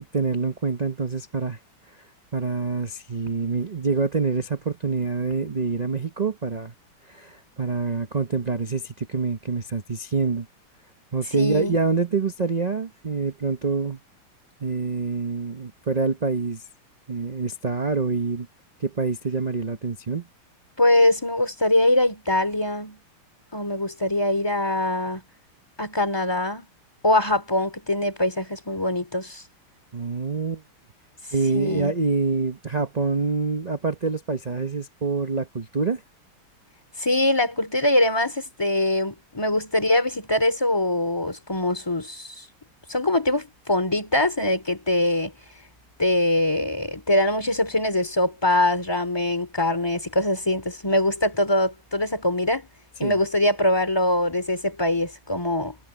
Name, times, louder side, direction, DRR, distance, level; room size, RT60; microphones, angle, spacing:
voice 1, 0.0-1.6 2.3-6.7 7.1-10.5 11.1-14.0 14.6-16.6 17.1-18.5 18.8-20.2 29.9-30.6 31.3-36.0 53.0-53.2, right 4 dB, 40° right, 0.6 m, -26 dB
voice 2, 11.3-11.8 20.8-23.0 23.5-25.2 25.8-26.7 27.0-29.4 31.5-31.9 37.0-42.5 42.9-45.3 46.0-52.7 53.0-55.8, left 1 dB, 10° left, 3.3 m, -23 dB
omnidirectional pair, 2.4 m